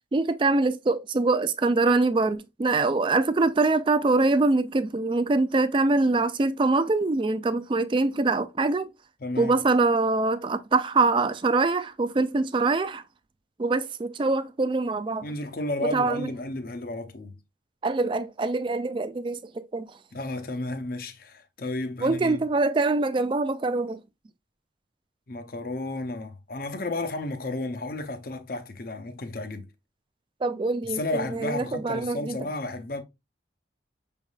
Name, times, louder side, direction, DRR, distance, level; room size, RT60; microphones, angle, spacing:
voice 1, 0.1-8.9 9.4-13.0 13.6-15.3 15.8-16.3 17.8-19.9 22.0-24.0 30.4-32.4, right 3 dB, 25° right, 0.3 m, -24 dB
voice 2, 9.2-9.6 15.2-17.4 20.1-22.4 25.3-29.7 30.8-33.0, left 2 dB, 50° left, 0.7 m, -32 dB
6.3 x 3.4 x 2.4 m
head